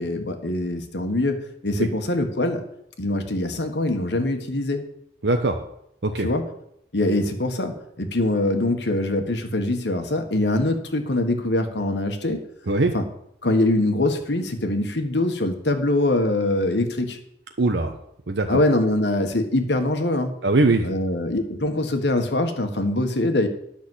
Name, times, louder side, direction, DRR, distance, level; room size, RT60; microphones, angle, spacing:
voice 1, 0.0-2.6 3.0-4.8 6.2-6.4 6.9-12.4 12.9-13.0 13.4-17.2 18.5-20.4 20.8-23.5, left 1 dB, 80° left, 6 dB, 1.5 m, -23 dB
voice 2, 5.2-5.6 6.0-6.3 12.7-12.9 17.6-17.9 18.3-18.6 20.4-20.9, right 2 dB, 85° right, 4 dB, 0.9 m, -21 dB
10.5 x 6.1 x 8.0 m, 0.75 s
head